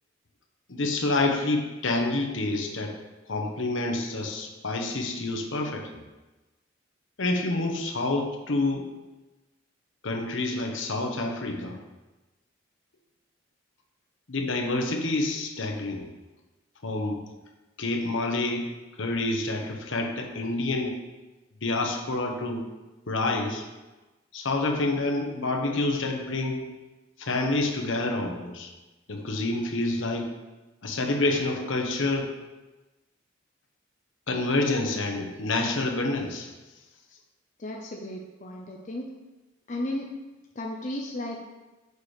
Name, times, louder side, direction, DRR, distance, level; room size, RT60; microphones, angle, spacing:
voice 1, 0.7-2.9 3.3-5.9 7.2-8.9 10.0-11.8 14.3-16.1 16.8-17.2 17.8-18.7 19.0-21.0 21.6-22.7 23.1-23.7 24.3-26.6 27.2-28.7 29.1-30.3 30.8-32.3 34.3-36.5, left 2 dB, 70° left, 3 dB, 1.0 m, -28 dB
voice 2, 37.6-39.1 39.7-40.1 40.6-41.5, left 1 dB, 40° left, 1 dB, 0.6 m, -34 dB
6.6 x 4.9 x 4.9 m, 1.1 s
head